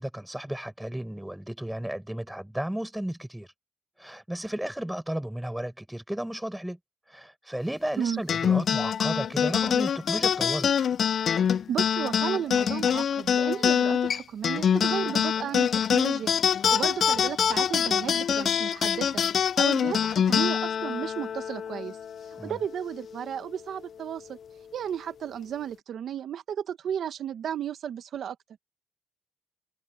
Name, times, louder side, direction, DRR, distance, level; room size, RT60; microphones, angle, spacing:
voice 1, 0.0-3.5 4.0-6.8 7.1-10.7 22.4-22.6, right 1 dB, 5° right, 5.9 m, -33 dB
sound 1, 8.3-23.0, left 8 dB, 65° left, 0.3 m, -25 dB
voice 2, 11.7-16.3 16.7-19.1 19.4-24.4 24.7-28.4, right 9 dB, 75° right, 1.0 m, -34 dB
cardioid pair, 80°, 0 cm